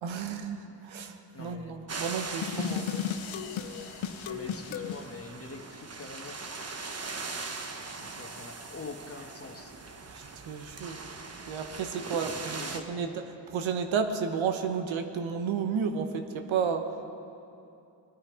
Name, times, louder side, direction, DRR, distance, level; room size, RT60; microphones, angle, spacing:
voice 1, 0.0-2.9 8.0-8.1 10.1-11.0 11.5-13.1 13.5-16.8, right 6 dB, 80° right, 6 dB, 1.1 m, -32 dB
voice 2, 1.3-1.8 2.5-3.0 4.3-6.4 8.0-9.8 12.0-12.1 12.6-13.2, left 3 dB, 30° left, 5 dB, 1.3 m, -45 dB
sound 1, 1.9-12.8, right 4 dB, 30° right, 1.1 m, -41 dB
sound 2, 2.4-5.1, left 9 dB, 85° left, 0.7 m, -34 dB
20.0 x 10.0 x 5.0 m, 2.7 s
cardioid pair, 70°, 46 cm